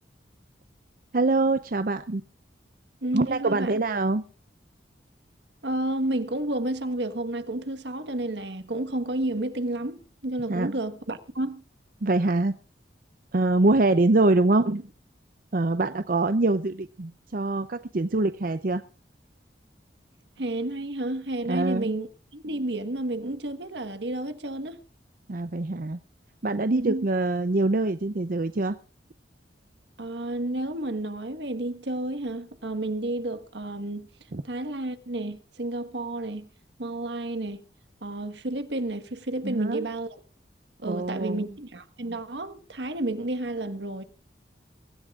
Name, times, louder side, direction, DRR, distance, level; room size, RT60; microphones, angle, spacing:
voice 1, 1.1-2.2 3.1-4.2 10.5-10.7 12.0-12.5 13.3-14.9 15.5-18.8 21.5-22.0 25.3-26.0 26.4-28.8 34.3-34.4 39.4-39.9 40.8-41.5, right 2 dB, 50° right, 0.6 m, -24 dB
voice 2, 3.0-3.7 5.6-11.6 20.4-24.8 26.7-27.1 30.0-34.1 34.4-36.5 36.8-37.6 38.0-40.1 40.8-44.0, right 1 dB, 75° right, 1.5 m, -31 dB
23.0 x 14.5 x 2.4 m
head